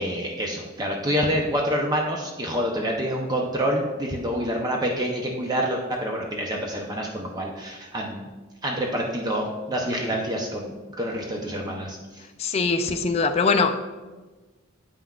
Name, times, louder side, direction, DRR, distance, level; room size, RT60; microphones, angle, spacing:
voice 1, 0.0-8.3 8.6-12.0, equal, 20° right, 0 dB, 0.6 m, -27 dB
voice 2, 12.4-13.8, left 4 dB, 30° left, 7 dB, 0.3 m, -22 dB
8.5 x 5.6 x 2.3 m, 1.2 s
head